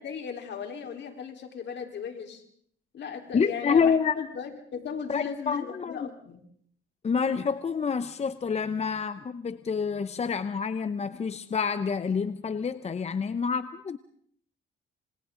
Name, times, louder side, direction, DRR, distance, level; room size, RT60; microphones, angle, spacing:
voice 1, 0.0-2.4 2.9-6.4, left 7 dB, 65° left, 3 dB, 4.1 m, -37 dB
voice 2, 3.3-4.2 5.1-6.1 7.0-14.0, left 6 dB, 35° left, 13 dB, 0.8 m, -28 dB
27.0 x 26.5 x 3.9 m, 0.65 s
cardioid pair, 90°, 20 cm